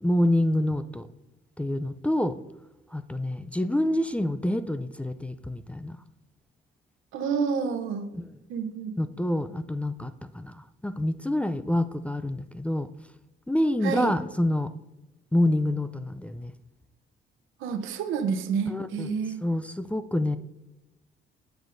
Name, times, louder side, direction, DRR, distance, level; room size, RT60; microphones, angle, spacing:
voice 1, 0.0-1.1 1.6-2.4 2.9-6.0 8.2-8.3 9.0-12.9 13.5-14.7 15.3-16.5 18.7-19.1 19.4-20.4, left 1 dB, 5° left, 10 dB, 0.4 m, -27 dB
voice 2, 7.1-8.1 8.5-8.9 13.8-14.1 17.6-19.4, right 6 dB, 85° right, 10 dB, 0.8 m, -29 dB
10.5 x 7.1 x 2.6 m, 1.0 s
cardioid pair, 90°, 20 cm